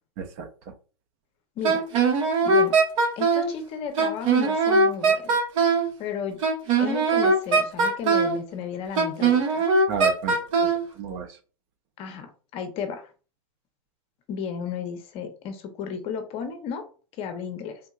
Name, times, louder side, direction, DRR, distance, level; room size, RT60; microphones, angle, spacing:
voice 1, 0.2-0.7 9.9-11.4, right 5 dB, 45° right, 8 dB, 0.6 m, -34 dB
Wind instrument woodwind instrument, 1.6-3.5 4.0-5.9 6.4-8.4 9.0-10.8, right 4 dB, 60° right, 1.3 m, -20 dB
voice 2, 2.4-2.7 3.2-5.4 6.0-6.4 6.8-9.7 12.0-13.0 14.3-16.8 17.2-17.8, left 7 dB, 35° left, 6 dB, 0.7 m, -34 dB
3.4 x 2.7 x 2.3 m, 0.36 s
hypercardioid pair, 135°, 18 cm